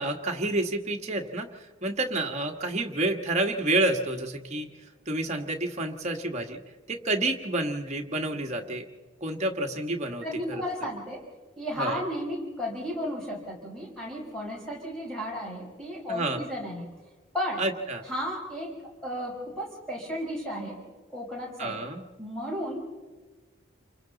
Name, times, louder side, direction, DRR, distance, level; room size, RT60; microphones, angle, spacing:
voice 1, 0.0-1.5 1.8-4.7 5.1-6.6 6.9-8.8 9.2-10.6 11.8-12.0 16.1-16.4 17.6-18.0 21.6-22.0, right 2 dB, 30° right, 2 dB, 1.5 m, -29 dB
voice 2, 10.2-11.2 11.6-16.9 17.3-17.6 18.1-18.8 19.0-20.8 21.1-21.8 22.2-22.9, equal, 5° left, -4 dB, 5.2 m, -34 dB
28.5 x 24.5 x 4.0 m, 1.3 s
head